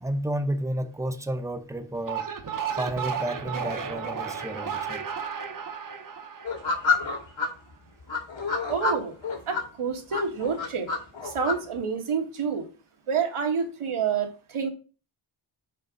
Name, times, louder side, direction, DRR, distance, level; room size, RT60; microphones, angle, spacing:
voice 1, 0.0-2.3 2.8-5.1, right 1 dB, 5° right, 0.6 m, -31 dB
sound 1, 1.9-7.3, right 7 dB, 40° right, 0.7 m, -33 dB
sound 2, 6.4-7.5 8.1-9.7 10.1-11.5, left 4 dB, 65° left, 1.9 m, -28 dB
voice 2, 8.7-9.2 9.5-10.9 11.2-12.7 13.1-14.7, right 6 dB, 80° right, 1.6 m, -28 dB
6.7 x 3.6 x 5.1 m
wide cardioid pair, 150°, 49 cm